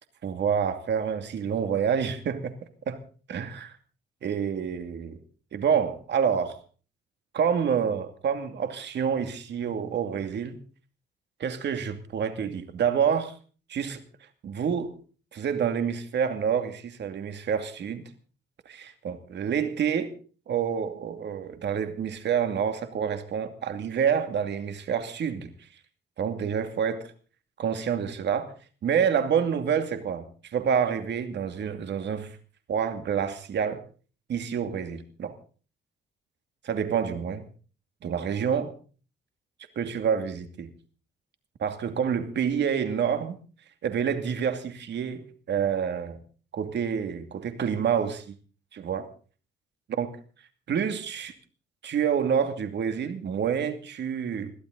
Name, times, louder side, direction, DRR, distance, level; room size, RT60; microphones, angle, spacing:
voice 1, 0.2-2.5 2.9-3.0 3.3-3.7 4.2-5.2 5.5-6.6 7.3-10.6 11.4-13.4 13.7-14.0 14.4-14.9 15.3-18.1 19.0-20.1 20.5-25.5 26.2-27.1 27.6-28.5 28.8-32.4 32.7-33.8 34.3-35.4 36.6-37.4 38.0-38.7 39.8-40.7 41.6-43.4 43.8-46.2 46.5-48.4 48.7-49.1 49.9-50.1 50.7-51.3 51.8-54.5, right 7 dB, 60° right, 2.5 m, -28 dB
22.5 x 14.5 x 4.0 m
cardioid pair, 90°, 20 cm